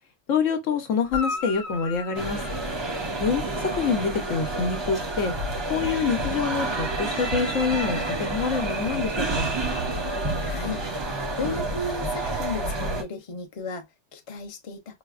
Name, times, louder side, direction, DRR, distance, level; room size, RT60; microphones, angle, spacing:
voice 1, 0.3-2.4 3.2-5.3 5.7-9.5, left 6 dB, 90° left, 1.2 m, -26 dB
Guitar, 1.0-3.6 7.5-7.6, left 4 dB, 65° left, 0.9 m, -35 dB
sound 1, 2.1-13.0, right 2 dB, 30° right, 0.5 m, -29 dB
voice 2, 10.4-10.9 11.1-15.0, left 3 dB, 35° left, 0.6 m, -35 dB
4.7 x 2.1 x 2.3 m
omnidirectional pair, 1.3 m